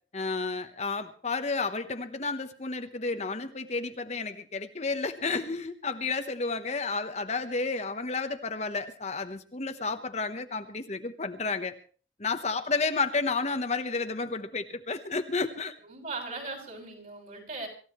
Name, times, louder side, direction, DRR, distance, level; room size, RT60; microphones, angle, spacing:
voice 1, 0.1-11.7 12.2-15.7, left 4 dB, 40° left, 8 dB, 1.0 m, -31 dB
voice 2, 15.8-17.7, right 3 dB, 50° right, 0 dB, 6.1 m, -38 dB
26.0 x 14.5 x 3.1 m, 0.41 s
head